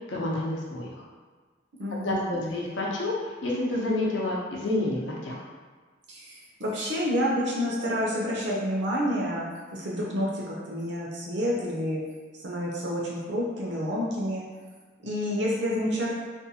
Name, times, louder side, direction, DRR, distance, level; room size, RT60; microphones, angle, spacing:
voice 1, 0.1-0.9 1.9-5.4, left 1 dB, 85° left, -3 dB, 0.6 m, -29 dB
voice 2, 1.8-2.5 6.1-6.3 6.6-12.0 12.4-14.5 15.0-16.1, equal, 65° right, -4 dB, 0.7 m, -29 dB
2.6 x 2.3 x 2.7 m, 1.5 s
head